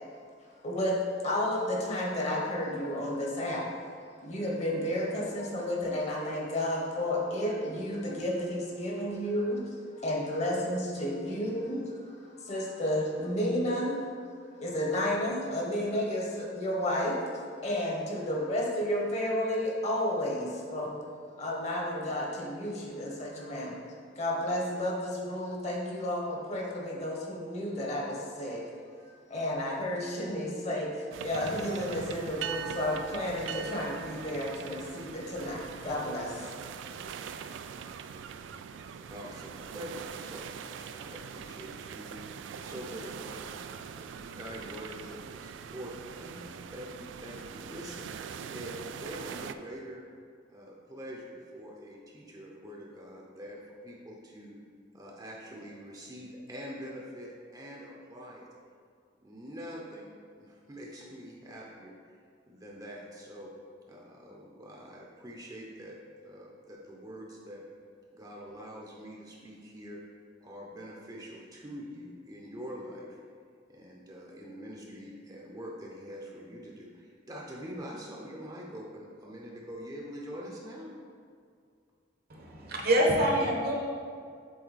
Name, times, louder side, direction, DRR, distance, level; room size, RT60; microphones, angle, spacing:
voice 1, 0.6-3.7 4.2-14.0 14.6-21.0 21.4-23.8 24.2-28.6 29.0-36.5, left 1 dB, 35° left, -2 dB, 1.1 m, -32 dB
sound 1, 31.1-49.5, right 7 dB, 75° right, 0.3 m, -42 dB
voice 2, 39.1-42.1 42.6-43.5 43.9-50.0 50.5-54.6 54.9-58.5 59.2-61.9 62.5-63.5 63.9-65.9 66.2-67.6 68.1-70.0 70.4-73.2 73.7-80.9, equal, 20° right, -3 dB, 0.7 m, -44 dB
voice 3, 82.3-83.9, equal, 55° right, -1 dB, 1.1 m, -26 dB
7.7 x 3.8 x 4.1 m, 2.2 s
head